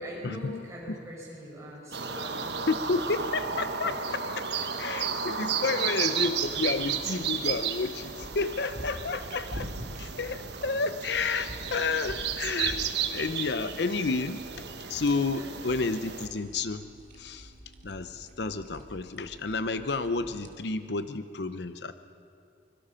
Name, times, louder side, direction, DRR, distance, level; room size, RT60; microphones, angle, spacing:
voice 1, 0.0-2.7 3.0-3.1 3.8-3.9 5.6-6.2 12.0-12.3 13.7-14.0 15.3-15.5, equal, 15° right, -4 dB, 6.2 m, -43 dB
sound 1, 1.9-16.3, right 7 dB, 60° right, 1.3 m, -33 dB
voice 2, 2.7-4.5 4.8-9.7 10.0-14.4 14.9-16.9 17.2-17.5 17.8-21.9, left 3 dB, 60° left, 11 dB, 0.7 m, -31 dB
sound 2, 6.4-20.5, equal, 40° right, 2.2 m, -46 dB
25.0 x 22.0 x 5.7 m, 2.4 s
head